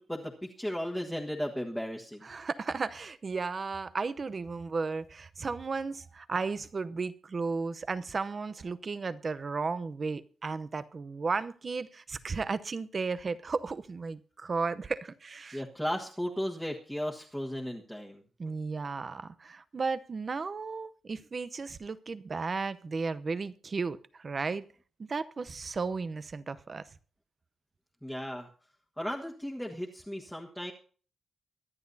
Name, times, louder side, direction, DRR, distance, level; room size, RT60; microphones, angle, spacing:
voice 1, 0.0-2.3 15.5-18.2 28.0-28.5 29.0-30.7, equal, ahead, 1.5 m, -35 dB
voice 2, 2.2-15.6 18.4-24.6 25.0-26.8, right 4 dB, 40° right, 0.7 m, -34 dB
23.5 x 10.5 x 2.7 m
cardioid pair, 105°, 0 cm